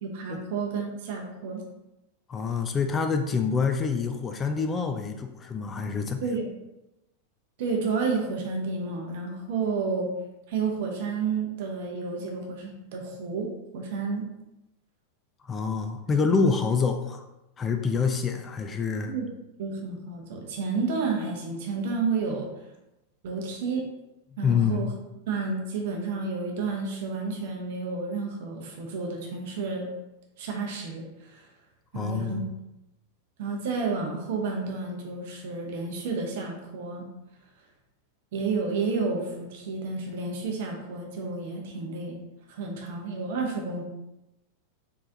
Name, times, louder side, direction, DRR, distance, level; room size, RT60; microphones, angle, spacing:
voice 1, 0.0-1.7 6.2-6.5 7.6-10.1 10.5-13.5 13.7-14.3 19.1-19.3 19.6-22.5 23.2-23.9 24.4-24.9 25.3-29.9 30.4-31.4 31.9-32.4 33.4-37.1 38.3-42.2 42.5-43.8, right 4 dB, 50° right, 2 dB, 0.7 m, -31 dB
voice 2, 2.3-6.2 15.4-17.2 17.6-19.1 24.3-25.0 31.9-32.5, left 5 dB, 20° left, 5 dB, 0.3 m, -26 dB
3.6 x 3.2 x 2.6 m, 0.93 s
figure-of-eight pair, 90°, 0 cm